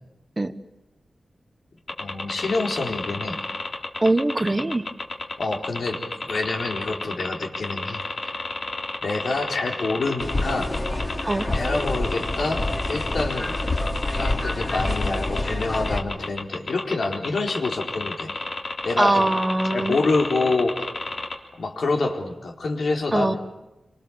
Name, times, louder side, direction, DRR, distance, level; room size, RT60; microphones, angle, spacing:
sound 1, 1.9-21.3, left 3 dB, 55° left, 3.5 m, -31 dB
voice 1, 2.0-3.4 5.4-8.0 9.0-10.8 11.5-13.5 14.0-18.3 18.8-19.3 19.7-20.9 21.6-23.4, left 3 dB, 70° left, 1 dB, 4.3 m, -27 dB
voice 2, 4.0-4.9 11.2-11.5 19.0-20.0 23.1-23.4, right 2 dB, 20° right, 11 dB, 1.3 m, -22 dB
sound 2, 10.2-16.0, left 2 dB, 25° left, 2.9 m, -27 dB
28.0 x 26.0 x 7.2 m, 1.0 s
wide cardioid pair, 140°, 0 cm